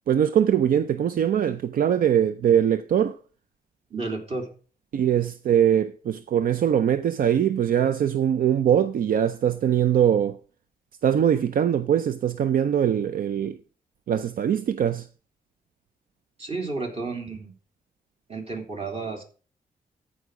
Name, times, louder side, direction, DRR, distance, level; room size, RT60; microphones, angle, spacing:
voice 1, 0.1-3.1 4.9-10.4 11.0-13.6 14.1-15.1, right 9 dB, 75° right, 0.5 m, -22 dB
voice 2, 3.9-4.5 16.4-17.5 18.3-19.2, right 3 dB, 40° right, 3.2 m, -32 dB
14.5 x 4.9 x 4.9 m
cardioid pair, 80°, 15 cm